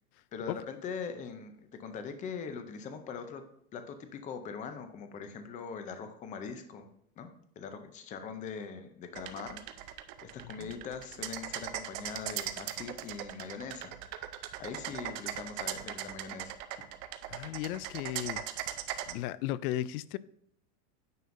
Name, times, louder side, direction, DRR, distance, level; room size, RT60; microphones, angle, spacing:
voice 1, 0.3-3.4 3.7-6.9 7.2-7.3 7.6-9.9 10.2-14.0 14.6-16.5, left 6 dB, 15° left, 8 dB, 0.4 m, -42 dB
sound 1, 9.1-19.1, right 12 dB, 45° right, 0.5 m, -39 dB
voice 2, 17.3-18.4 18.7-18.8 19.1-20.2, left 14 dB, 70° left, 18 dB, 0.5 m, -35 dB
9.3 x 5.5 x 2.5 m, 0.75 s
supercardioid pair, 145°, 46 cm